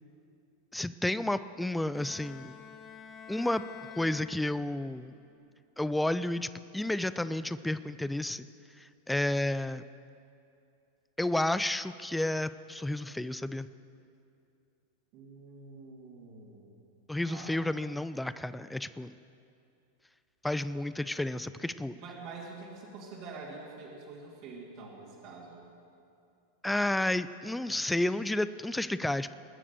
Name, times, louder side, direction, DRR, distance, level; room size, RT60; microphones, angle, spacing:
voice 1, 0.7-2.6 3.3-3.6 4.0-5.1 5.8-8.5 8.8-9.8 11.2-13.7 17.1-19.1 20.4-21.9 26.6-29.3, left 1 dB, 5° left, 14 dB, 0.3 m, -31 dB
Bowed string instrument, 1.9-5.1, left 8 dB, 25° left, 0.9 m, -48 dB
voice 2, 15.1-16.7 17.3-17.6 21.9-25.6, right 3 dB, 45° right, -4 dB, 2.6 m, -46 dB
20.0 x 7.3 x 6.9 m, 2.6 s
figure-of-eight pair, 90°, 0 cm